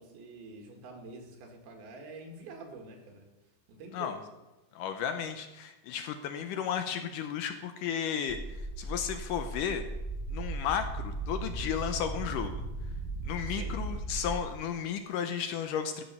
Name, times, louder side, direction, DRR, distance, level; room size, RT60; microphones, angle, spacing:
voice 1, 0.0-3.3 3.7-4.2 13.5-13.8, right 3 dB, 90° right, 2 dB, 3.6 m, -47 dB
voice 2, 4.8-9.8 10.3-12.6 13.3-16.0, left 8 dB, 75° left, 7 dB, 2.1 m, -34 dB
sound 1, 8.3-14.4, right 2 dB, 5° right, 0.7 m, -37 dB
13.5 x 7.6 x 5.5 m, 1.0 s
omnidirectional pair, 4.3 m